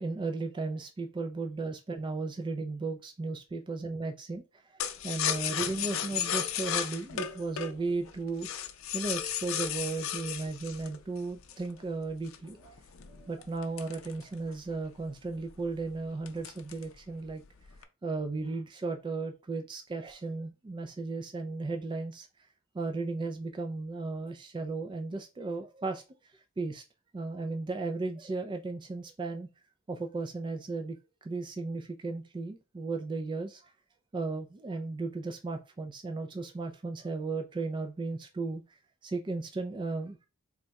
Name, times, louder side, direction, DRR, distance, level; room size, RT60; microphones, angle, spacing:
voice 1, 0.0-8.5 8.9-12.7 13.1-17.4 18.0-22.3 22.7-26.0 26.6-26.8 27.1-29.5 29.9-31.0 31.2-33.7 34.1-38.6 39.0-40.2, right 3 dB, 25° right, 5 dB, 0.3 m, -35 dB
sound 1, 4.8-11.7 12.3-14.7 15.1-15.2 15.5-15.8 16.3-17.0 17.3-17.8, left 9 dB, 70° left, 0.5 m, -34 dB
3.5 x 2.2 x 3.9 m, 0.29 s
head